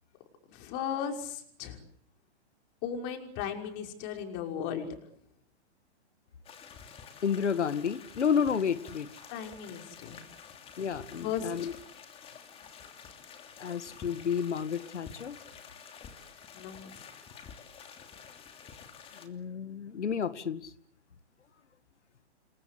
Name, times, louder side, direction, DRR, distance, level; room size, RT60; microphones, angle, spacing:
voice 1, 0.5-1.8 2.8-4.9 9.3-10.2 11.2-11.7 16.5-16.9, left 8 dB, 30° left, 5.8 m, -36 dB
sound 1, 6.4-19.3, left 7 dB, 15° left, 3.0 m, -49 dB
voice 2, 7.2-9.1 10.8-11.7 13.6-15.4 19.1-20.7, left 7 dB, 85° left, 2.0 m, -31 dB
29.0 x 22.5 x 8.6 m
hypercardioid pair, 145°, 34 cm